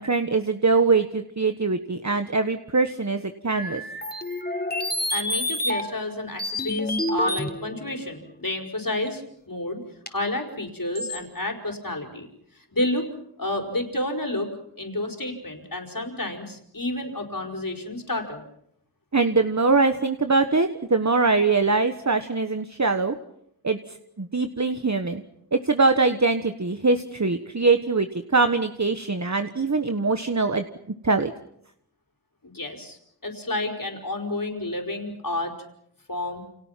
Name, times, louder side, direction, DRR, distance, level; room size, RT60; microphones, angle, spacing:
voice 1, 0.0-3.8 19.1-23.1 23.6-25.2 25.5-30.6 31.0-31.3, right 3 dB, 45° right, 8 dB, 1.4 m, -22 dB
sound 1, 3.5-6.1 6.4-7.9 9.1-9.2 10.1-10.2 10.9-11.2, left 1 dB, 25° left, 3.5 m, -28 dB
voice 2, 5.1-9.8 10.1-12.3 12.7-13.1 13.4-14.5 14.8-18.4 32.4-35.5 36.1-36.4, left 1 dB, 55° left, 2 dB, 5.2 m, -30 dB
29.5 x 29.0 x 5.9 m, 0.73 s
wide cardioid pair, 40°, 40 cm